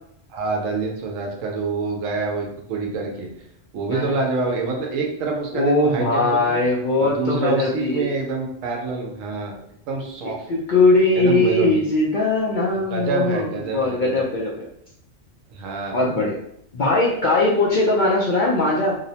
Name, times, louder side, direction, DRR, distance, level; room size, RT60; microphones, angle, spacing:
voice 1, 0.3-3.3 3.7-6.6 7.0-9.6 9.9-10.5 11.1-11.9 12.9-14.2 15.5-16.0, right 3 dB, 80° right, 0 dB, 1.0 m, -26 dB
voice 2, 5.5-8.1 10.5-14.7 15.9-16.3 16.7-19.0, left 2 dB, 75° left, -4 dB, 0.4 m, -20 dB
2.7 x 2.0 x 2.7 m, 0.72 s
omnidirectional pair, 1.3 m